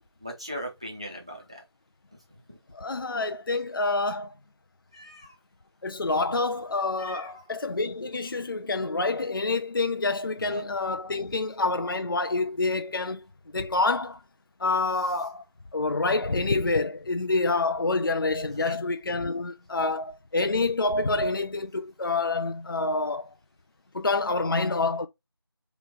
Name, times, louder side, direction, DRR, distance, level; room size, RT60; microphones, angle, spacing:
voice 1, 0.2-1.6 4.9-5.3 7.0-7.4 10.4-10.6 18.5-18.8, equal, 15° right, 0.5 m, -39 dB
voice 2, 2.7-4.3 5.8-13.3 13.5-14.2 14.6-15.4 15.7-23.3 23.9-25.1, left 3 dB, 55° left, 0.4 m, -27 dB
4.1 x 3.0 x 3.5 m
figure-of-eight pair, 170°, 14 cm